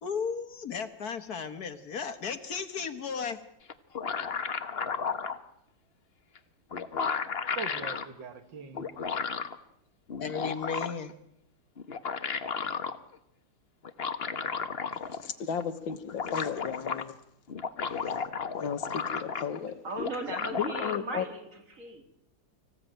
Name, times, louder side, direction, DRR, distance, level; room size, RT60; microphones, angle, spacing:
voice 1, 0.0-3.4 10.2-11.1, left 6 dB, 55° left, 1.7 m, -35 dB
sound 1, 3.7-5.4 6.4-6.5 6.7-8.1 8.7-9.6 10.1-11.1 11.8-13.0 13.8-15.3 15.6-15.7 15.9-17.0 17.5-19.6 20.0-21.0, left 5 dB, 40° left, 1.1 m, -33 dB
voice 2, 6.9-9.2, right 6 dB, 70° right, 2.2 m, -43 dB
voice 3, 15.2-17.1 18.6-19.8 20.6-21.2, left 7 dB, 80° left, 2.1 m, -34 dB
voice 4, 19.8-22.0, right 2 dB, 40° right, 3.3 m, -37 dB
25.0 x 16.0 x 9.0 m
omnidirectional pair, 2.1 m